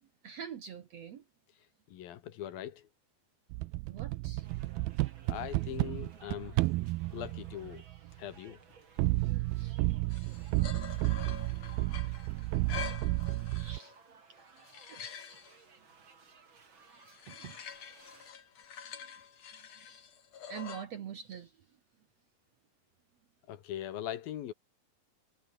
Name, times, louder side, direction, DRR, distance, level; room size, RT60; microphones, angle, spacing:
voice 1, 0.0-1.3 3.9-4.5 5.1-5.3 8.0-8.2 9.3-9.8 12.9-13.0 13.3-13.9 14.9-15.1 17.3-17.6 18.1-18.2 19.4-20.0 20.5-21.8, right 8 dB, 60° right, 1.9 m, -47 dB
voice 2, 1.9-2.9 5.3-6.6 7.1-7.8 8.2-8.6 23.5-24.5, left 11 dB, 70° left, 3.2 m, -41 dB
sound 1, 3.5-8.2 9.0-13.8, right 20 dB, 80° right, 2.4 m, -32 dB
sound 2, 4.4-18.3, right 5 dB, 35° right, 3.3 m, -60 dB
sound 3, 10.1-14.0 14.4-15.6 16.9-20.8, left 7 dB, 45° left, 3.1 m, -46 dB
omnidirectional pair, 4.5 m